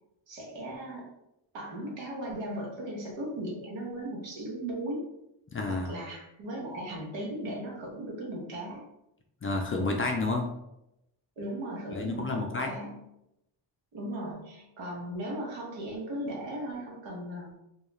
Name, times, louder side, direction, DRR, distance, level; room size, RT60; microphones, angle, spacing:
voice 1, 0.3-1.1 1.5-5.0 5.7-8.8 11.4-13.0 13.9-17.5, right 1 dB, 75° right, -2 dB, 1.0 m, -37 dB
voice 2, 5.5-5.9 9.4-10.5 11.9-12.7, left 3 dB, 30° left, 2 dB, 0.4 m, -30 dB
2.3 x 2.3 x 3.0 m, 0.85 s
cardioid pair, 85°, 45 cm